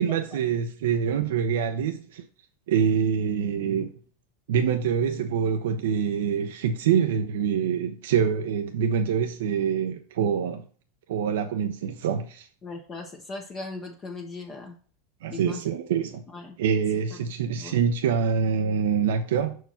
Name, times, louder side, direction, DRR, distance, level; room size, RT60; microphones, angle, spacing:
voice 1, 0.0-2.2 2.7-3.9 4.5-10.6 11.1-12.5 15.2-16.2 16.6-19.6, right 7 dB, 80° right, 0.7 m, -25 dB
voice 2, 12.6-14.8 15.3-15.6 16.3-16.6 17.5-17.8, left 3 dB, 25° left, 1.1 m, -38 dB
6.1 x 4.6 x 5.7 m
supercardioid pair, 125°, 0 cm